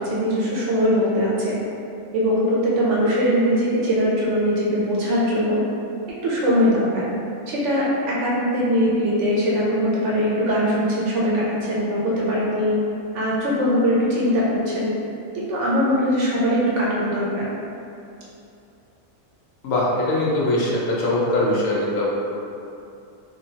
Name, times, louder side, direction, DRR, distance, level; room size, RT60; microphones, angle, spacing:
voice 1, 0.0-1.6 2.1-5.6 6.2-7.1 7.5-12.8 13.1-14.9 15.5-17.4, equal, 65° right, -6 dB, 0.9 m, -21 dB
voice 2, 19.6-22.1, left 1 dB, 70° left, -5 dB, 1.0 m, -21 dB
3.0 x 2.9 x 2.7 m, 2.6 s
omnidirectional pair, 1.5 m